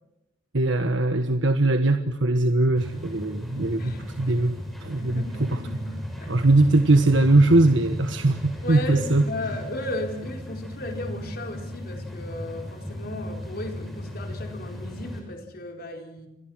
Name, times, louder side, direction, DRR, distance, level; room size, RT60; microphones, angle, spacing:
voice 1, 0.5-4.5 4.8-5.6 6.3-9.2, right 2 dB, 75° right, 7 dB, 1.4 m, -21 dB
sound 1, 2.8-15.2, left 1 dB, ahead, 7.1 m, -36 dB
voice 2, 5.0-5.4 6.2-6.5 8.6-16.3, left 1 dB, 55° left, 3 dB, 4.1 m, -35 dB
29.0 x 25.5 x 6.3 m, 0.90 s
head